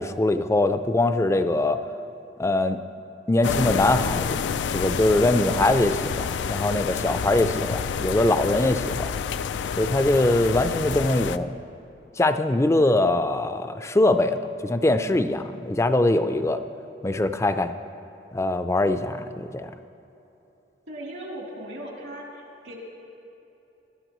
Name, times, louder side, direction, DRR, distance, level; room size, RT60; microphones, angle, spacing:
voice 1, 0.0-1.8 2.4-2.8 3.3-4.4 4.7-9.1 9.8-11.6 12.2-16.6 17.0-17.7 18.3-19.7, left 2 dB, 15° left, 9 dB, 0.4 m, -22 dB
sound 1, 3.4-11.4, left 6 dB, 85° left, 0.3 m, -28 dB
voice 2, 20.9-22.7, right 1 dB, 85° right, -3 dB, 3.1 m, -38 dB
20.0 x 12.5 x 3.1 m, 3.0 s
head